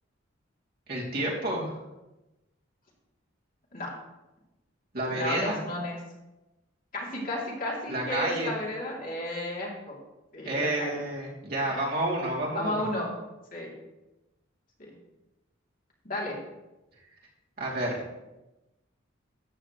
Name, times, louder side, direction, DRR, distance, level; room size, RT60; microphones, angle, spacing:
voice 1, 0.9-1.8 4.9-5.6 7.9-8.5 10.4-12.9 17.6-18.0, right 1 dB, 50° right, -4 dB, 3.1 m, -30 dB
voice 2, 5.1-6.0 6.9-10.0 10.3-11.0 11.6-11.8 12.5-13.1 13.5-13.7 14.8-14.9 16.0-16.4, left 1 dB, 45° left, -4 dB, 3.2 m, -33 dB
14.0 x 9.2 x 3.2 m, 1.0 s
head